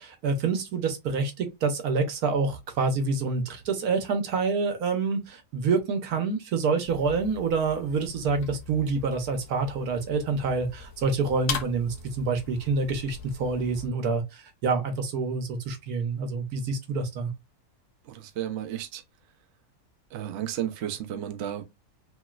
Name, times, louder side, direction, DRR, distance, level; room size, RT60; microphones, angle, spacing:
voice 1, 0.0-17.3, right 4 dB, 80° right, 1.3 m, -27 dB
sound 1, 6.8-13.9, left 6 dB, 65° left, 0.9 m, -40 dB
voice 2, 18.1-19.0 20.1-21.6, right 11 dB, 60° right, 0.7 m, -33 dB
3.0 x 2.9 x 2.3 m
omnidirectional pair, 1.6 m